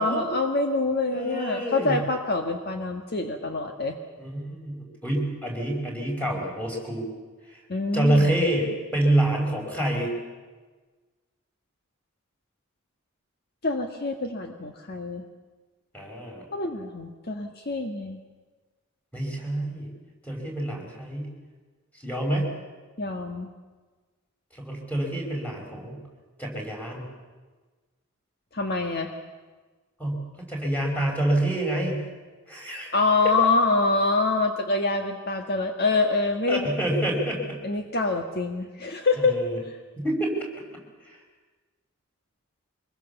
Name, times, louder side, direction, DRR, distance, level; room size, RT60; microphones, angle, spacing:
voice 1, 0.0-3.9 7.7-8.3 13.6-15.2 16.5-18.2 23.0-23.5 28.5-29.1 32.9-36.7 37.6-39.4, left 3 dB, 50° left, 4 dB, 1.6 m, -25 dB
voice 2, 1.1-2.0 4.2-7.1 7.9-10.1 15.9-16.4 19.1-19.9 20.2-21.3 22.0-22.5 24.6-26.0 26.4-27.1 30.0-32.0 32.5-33.0 36.5-37.6 39.2-39.6 40.0-40.3, right 1 dB, 10° left, -1 dB, 5.7 m, -27 dB
24.5 x 21.5 x 7.2 m, 1.3 s
head